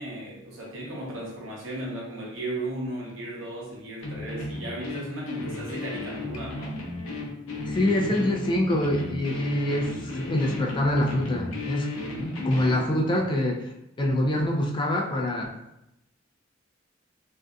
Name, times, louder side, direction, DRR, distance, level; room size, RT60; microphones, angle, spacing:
voice 1, 0.0-6.8, right 1 dB, 75° right, -4 dB, 0.8 m, -35 dB
sound 1, 4.0-12.9, left 2 dB, 80° left, 0.5 m, -34 dB
voice 2, 7.7-11.9 12.4-13.7 14.0-15.5, left 1 dB, 25° left, 0 dB, 0.3 m, -25 dB
2.6 x 2.3 x 2.2 m, 0.86 s
head